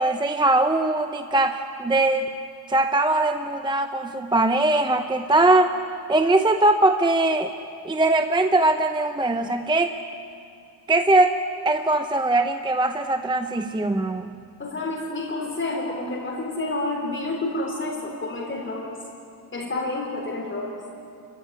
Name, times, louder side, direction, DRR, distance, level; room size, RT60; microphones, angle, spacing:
voice 1, 0.0-2.3 2.7-5.8 6.1-7.5 7.8-9.9 10.9-11.4 11.6-14.4, right 2 dB, 10° right, 7 dB, 0.7 m, -21 dB
voice 2, 14.6-18.9 19.5-20.8, left 2 dB, 30° left, -2 dB, 4.1 m, -29 dB
29.0 x 15.5 x 10.0 m, 2.6 s
cardioid pair, 140°, 39 cm